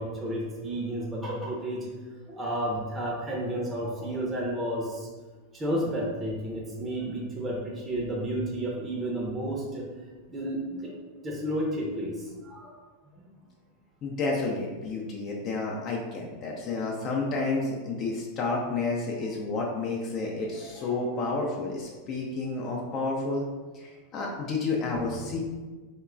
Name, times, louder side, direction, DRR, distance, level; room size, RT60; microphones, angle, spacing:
voice 1, 0.0-1.9 2.3-5.1 5.5-10.9 11.2-12.8 13.1-13.2 16.4-16.5 19.1-19.2 20.3-21.2 24.9-25.3, right 1 dB, 20° right, -3 dB, 0.6 m, -32 dB
voice 2, 14.0-23.5 23.7-25.4, left 3 dB, 40° left, -2 dB, 0.4 m, -30 dB
2.9 x 2.2 x 2.4 m, 1.3 s
figure-of-eight pair, 90°, 0 cm